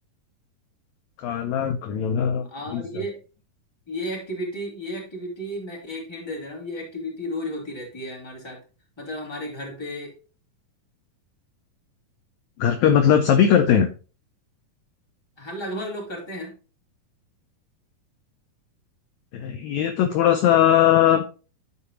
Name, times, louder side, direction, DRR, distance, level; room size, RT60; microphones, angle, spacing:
voice 1, 1.2-3.0 12.6-13.9 19.3-21.2, left 9 dB, 75° left, 6 dB, 1.8 m, -19 dB
voice 2, 2.5-3.2 3.9-8.6 9.0-10.1 15.4-16.5, equal, 10° left, -3 dB, 2.1 m, -33 dB
12.0 x 4.9 x 2.9 m, 0.35 s
omnidirectional pair, 3.9 m